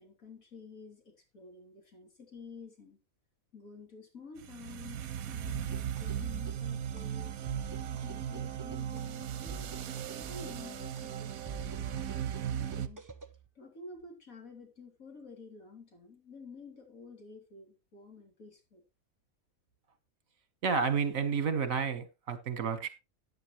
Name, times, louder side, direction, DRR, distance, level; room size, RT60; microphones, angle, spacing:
voice 1, 0.0-3.0 3.5-5.7 6.0-7.4 7.9-9.7 10.1-13.0 13.6-18.8, left 3 dB, 75° left, 3.6 m, -51 dB
sound 1, 4.4-12.9, right 9 dB, 85° right, 1.2 m, -37 dB
sound 2, 5.5-13.5, right 3 dB, 20° right, 0.6 m, -48 dB
voice 2, 20.6-22.9, right 5 dB, 70° right, 1.8 m, -30 dB
13.5 x 9.5 x 3.1 m
omnidirectional pair, 1.5 m